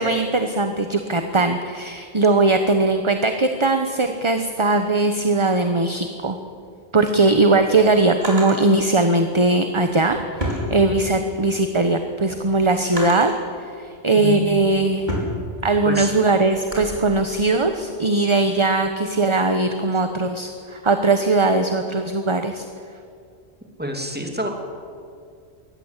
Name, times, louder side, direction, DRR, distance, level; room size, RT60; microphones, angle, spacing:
voice 1, 0.0-6.4 6.9-13.3 13.6-15.1 15.6-22.6, right 2 dB, 25° right, 7 dB, 1.1 m, -20 dB
Drawer open or close, 7.2-8.7 9.7-11.3 11.8-13.5 14.1-16.9, equal, 40° right, 5.3 m, -32 dB
voice 2, 14.2-14.7 15.8-16.1 23.8-24.5, right 1 dB, 10° right, 3 dB, 2.7 m, -27 dB
22.5 x 17.5 x 8.3 m, 2.3 s
omnidirectional pair, 1.1 m